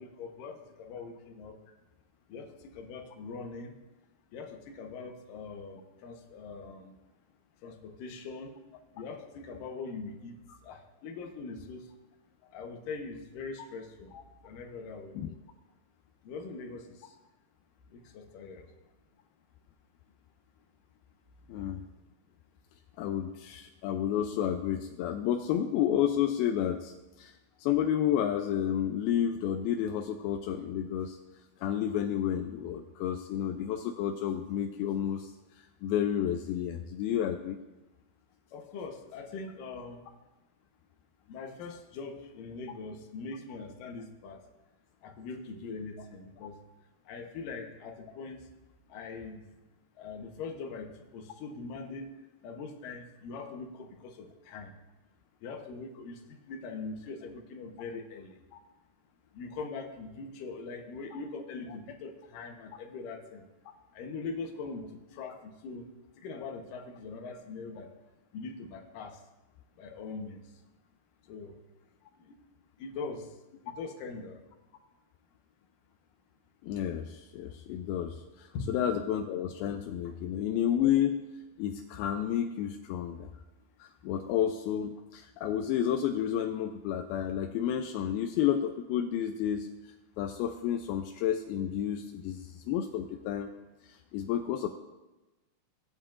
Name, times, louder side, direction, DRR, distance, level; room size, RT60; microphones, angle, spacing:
voice 1, 0.0-1.6 2.3-3.8 4.3-7.0 7.6-8.5 8.9-10.4 10.6-11.9 12.5-14.1 14.4-15.2 16.2-17.0 17.9-18.7 38.5-40.0 41.3-44.4 45.0-46.6 47.1-48.4 48.9-49.4 50.0-52.1 52.4-54.7 55.4-58.3 59.3-63.4 63.9-64.9 65.1-65.9 66.2-67.9 68.3-69.2 69.8-70.4 71.3-71.6 72.3-72.4 72.8-73.3 73.6-74.4 78.5-78.7 80.0-80.1, left 4 dB, 65° left, 3 dB, 2.3 m, -42 dB
voice 2, 21.5-21.8 23.0-26.9 27.2-27.3 27.6-31.2 31.6-35.3 35.8-37.6 58.5-58.6 76.6-81.2 81.6-83.3 83.8-89.7 90.2-93.5 93.8-94.7, left 10 dB, 85° left, 4 dB, 2.2 m, -31 dB
19.0 x 8.8 x 2.5 m, 1.1 s
omnidirectional pair, 4.9 m